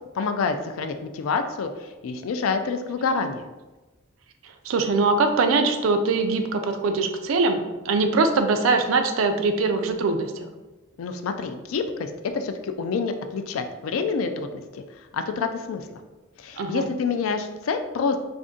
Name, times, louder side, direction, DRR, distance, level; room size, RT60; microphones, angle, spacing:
voice 1, 0.1-3.4 11.0-14.8 15.1-15.9 16.4-18.2, left 5 dB, 85° left, 7 dB, 0.3 m, -27 dB
voice 2, 4.6-7.6 7.8-10.3 16.6-16.9, right 3 dB, 80° right, 7 dB, 0.4 m, -22 dB
2.5 x 2.5 x 3.7 m, 1.2 s
head